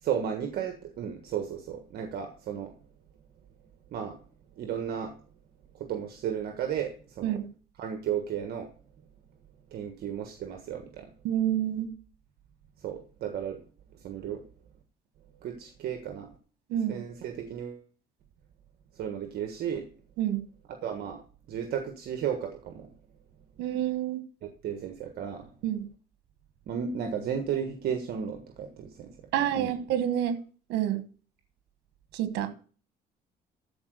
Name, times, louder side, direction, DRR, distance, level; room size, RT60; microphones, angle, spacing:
voice 1, 0.0-2.7 3.9-4.2 4.6-5.1 5.7-7.4 7.8-8.7 9.7-11.1 12.8-13.6 14.0-14.4 15.4-16.3 16.9-17.8 18.9-19.8 20.8-21.2 21.5-22.9 24.4-25.5 26.7-29.1 29.5-29.7, right 8 dB, 65° right, 1.5 m, -34 dB
voice 2, 11.2-11.9 16.7-17.0 20.2-20.4 23.6-24.2 25.6-25.8 29.3-30.4 30.7-31.0 32.1-32.5, right 11 dB, 85° right, 1.3 m, -28 dB
14.0 x 4.8 x 6.6 m
cardioid pair, 110°, 17 cm